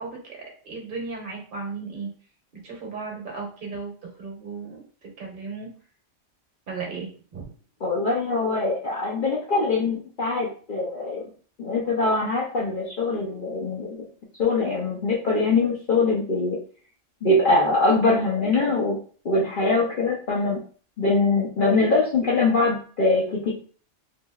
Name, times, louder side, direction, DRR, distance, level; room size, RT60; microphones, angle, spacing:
voice 1, 0.0-2.1 2.5-5.7 6.7-7.5, right 4 dB, 45° right, -1 dB, 1.1 m, -36 dB
voice 2, 7.8-11.2 11.6-13.9 14.4-16.6 17.2-19.0 19.2-20.6 21.0-23.5, left 3 dB, 50° left, -5 dB, 0.7 m, -23 dB
2.9 x 2.7 x 2.3 m, 0.41 s
omnidirectional pair, 1.3 m